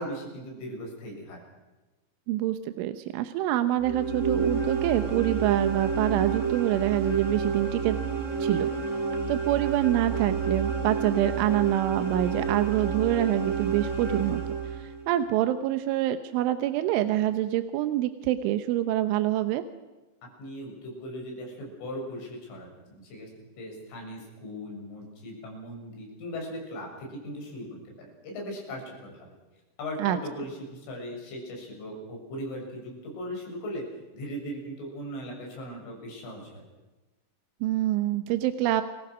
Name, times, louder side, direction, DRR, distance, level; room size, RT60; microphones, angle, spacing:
voice 1, 0.0-1.4 20.4-22.7 23.0-23.3 23.6-29.2 29.8-33.9 34.1-36.6, equal, 85° left, 0 dB, 9.4 m, -38 dB
voice 2, 2.3-8.0 8.4-8.7 9.3-19.6 30.0-30.2 37.6-38.8, right 13 dB, 85° right, 9 dB, 3.4 m, -26 dB
sound 1, 3.8-15.1, right 5 dB, 60° right, 0.8 m, -29 dB
30.0 x 23.5 x 6.3 m, 1.1 s
omnidirectional pair, 5.5 m